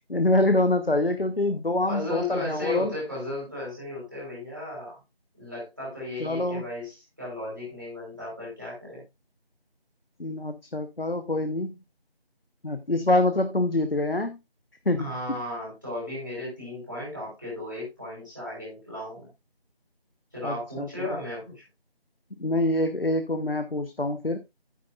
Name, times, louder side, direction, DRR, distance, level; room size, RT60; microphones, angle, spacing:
voice 1, 0.0-2.9 6.2-6.6 10.2-11.7 12.6-14.4 14.9-15.1 20.4-21.1 22.4-24.4, left 1 dB, 65° left, 9 dB, 1.0 m, -25 dB
voice 2, 1.9-5.0 5.4-9.0 15.0-19.3 20.3-21.6, left 1 dB, 20° right, -7 dB, 4.3 m, -35 dB
9.7 x 9.6 x 2.5 m, 0.23 s
figure-of-eight pair, 180°, 31 cm